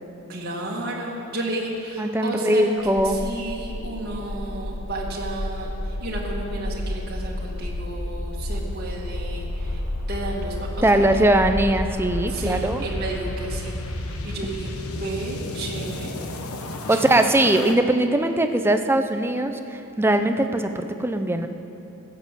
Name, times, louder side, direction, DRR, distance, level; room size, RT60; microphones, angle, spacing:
voice 1, 0.3-2.6 3.0-9.8 10.1-11.2 12.3-16.1 16.9-17.3, right 2 dB, 45° right, -3 dB, 1.9 m, -32 dB
voice 2, 2.0-3.2 10.8-12.8 15.1-15.2 16.9-21.5, right 1 dB, 10° right, 7 dB, 0.5 m, -21 dB
sound 1, 2.8-17.7, left 1 dB, 75° left, 1.0 m, -31 dB
16.0 x 7.6 x 7.5 m, 3.0 s
head